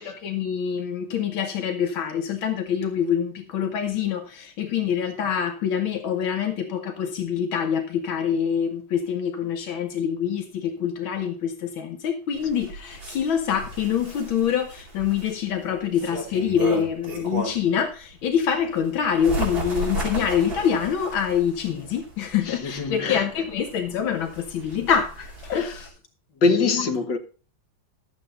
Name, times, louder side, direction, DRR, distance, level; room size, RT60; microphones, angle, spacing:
voice 1, 0.0-25.9, left 8 dB, 85° left, 1.8 m, -25 dB
Bird, 12.4-17.8 18.2-25.9, right 1 dB, 50° right, 5.2 m, -34 dB
voice 2, 22.4-23.5 25.5-25.8 26.4-27.2, left 4 dB, 65° left, 2.2 m, -24 dB
13.0 x 8.3 x 3.8 m
omnidirectional pair, 2.1 m